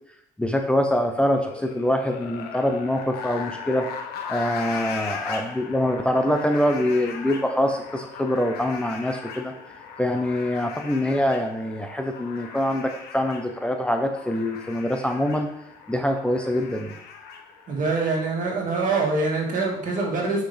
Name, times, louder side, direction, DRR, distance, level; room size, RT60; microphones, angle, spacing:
voice 1, 0.4-3.9 4.3-9.5 10.0-15.5 15.9-16.9, left 1 dB, 5° left, 4 dB, 0.7 m, -24 dB
sound 1, 1.2-18.2, left 6 dB, 70° left, 1.4 m, -38 dB
voice 2, 17.7-20.5, right 3 dB, 50° right, -1 dB, 2.3 m, -24 dB
8.1 x 5.8 x 3.5 m, 0.73 s
cardioid pair, 110°, 17 cm